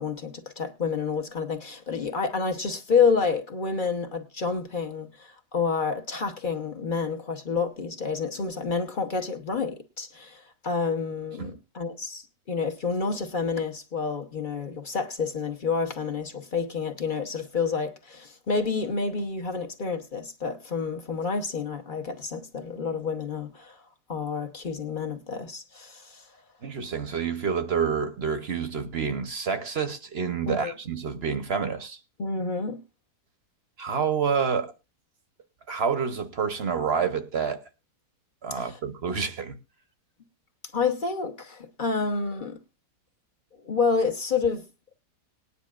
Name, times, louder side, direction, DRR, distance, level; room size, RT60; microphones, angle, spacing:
voice 1, 0.0-23.8 24.1-26.3 30.5-30.7 32.2-32.8 38.5-38.8 40.7-42.6 43.6-44.6, left 5 dB, 35° left, 0.9 m, -29 dB
voice 2, 26.6-32.0 33.8-34.7 35.7-37.6 38.4-39.6, right 6 dB, 45° right, 1.0 m, -28 dB
19.5 x 9.8 x 2.4 m
omnidirectional pair, 1.8 m